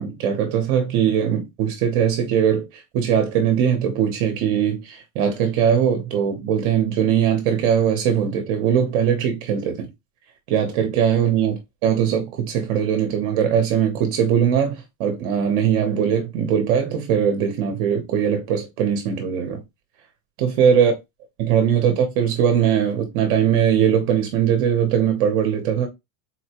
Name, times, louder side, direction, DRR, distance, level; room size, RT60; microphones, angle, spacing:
voice 1, 0.0-9.9 10.5-19.6 20.4-20.9 21.4-25.9, right 8 dB, 40° right, 0.7 m, -20 dB
4.0 x 2.1 x 2.8 m
supercardioid pair, 160°, 45 cm